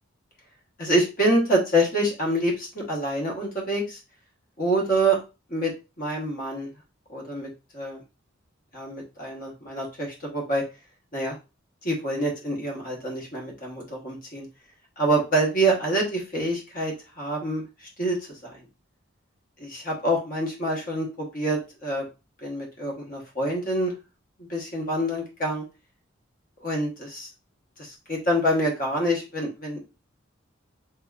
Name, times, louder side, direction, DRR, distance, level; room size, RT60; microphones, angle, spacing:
voice 1, 0.8-4.0 4.6-5.2 5.5-5.7 6.0-6.7 7.1-7.5 7.7-8.0 8.7-10.6 11.1-11.4 11.8-14.5 15.0-18.7 19.6-22.0 22.4-23.9 24.5-25.6 26.6-27.3 27.8-29.8, right 1 dB, 45° left, -1 dB, 1.0 m, -26 dB
3.3 x 2.9 x 2.3 m, 0.29 s
head